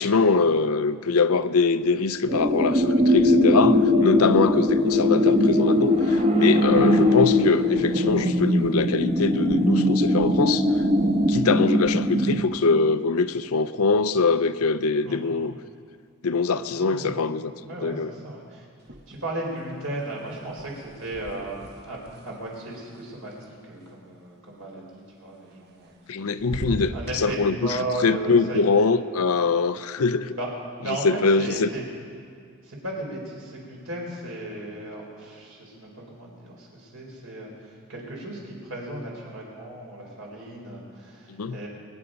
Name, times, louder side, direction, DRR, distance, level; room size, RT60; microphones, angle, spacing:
voice 1, 0.0-10.7 11.3-15.5 16.2-17.5 17.8-18.1 26.1-27.5 28.0-30.4 31.0-31.7 41.4-41.6, left 4 dB, 80° left, 12 dB, 0.6 m, -23 dB
sound 1, 2.3-12.4, left 1 dB, 30° right, 1.1 m, -20 dB
voice 2, 16.8-17.2 17.6-18.7 19.1-28.7 30.4-30.5 30.8-31.8 32.6-41.7, right 1 dB, 70° right, -2 dB, 4.3 m, -35 dB
sound 2, 18.8-19.5 19.8-23.9 25.5-26.1 26.4-27.2, equal, 50° right, 1.1 m, -39 dB
23.5 x 9.9 x 5.2 m, 2.3 s
head